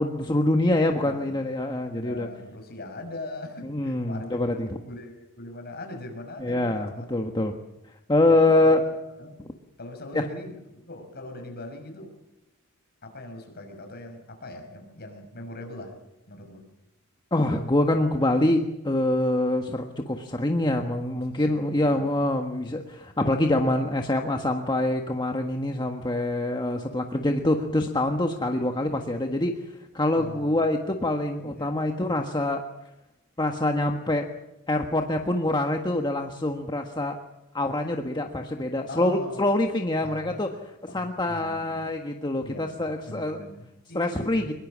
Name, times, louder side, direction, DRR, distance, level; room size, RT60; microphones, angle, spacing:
voice 1, 0.0-2.3 3.7-4.7 6.4-7.6 8.1-8.8 10.1-10.3 17.3-32.6 33.4-34.3 34.7-37.2 37.5-40.5 40.9-43.4 43.9-44.5, left 1 dB, 20° left, 3 dB, 1.5 m, -25 dB
voice 2, 0.9-1.4 1.9-7.1 8.2-8.9 9.2-9.4 9.8-12.1 13.0-16.0 16.3-16.7 21.1-22.0 30.2-30.6 30.9-31.1 31.4-31.7 32.1-32.2 38.9-39.5 40.0-40.4 40.9-41.8 42.4-44.5, left 2 dB, 50° left, 5 dB, 5.9 m, -41 dB
23.5 x 22.5 x 7.4 m, 0.89 s
head